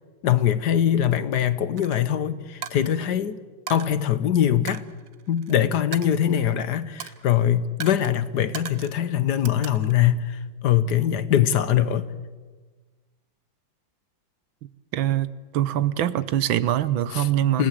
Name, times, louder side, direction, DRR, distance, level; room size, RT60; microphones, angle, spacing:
voice 1, 0.2-3.4 3.7-4.8 5.3-12.1 17.1-17.3 17.6-17.7, left 10 dB, 65° left, 14 dB, 1.4 m, -22 dB
Coin (dropping), 1.8-2.0 2.6-3.2 3.7-3.9 4.7-5.5 5.9-6.6 7.0-7.3 7.8-8.1 8.5-9.0 9.5-10.1, right 9 dB, 55° right, 1.1 m, -38 dB
voice 2, 14.9-17.6, right 12 dB, 85° right, 16 dB, 1.7 m, -23 dB
28.5 x 17.5 x 7.6 m, 1.4 s
omnidirectional pair, 2.1 m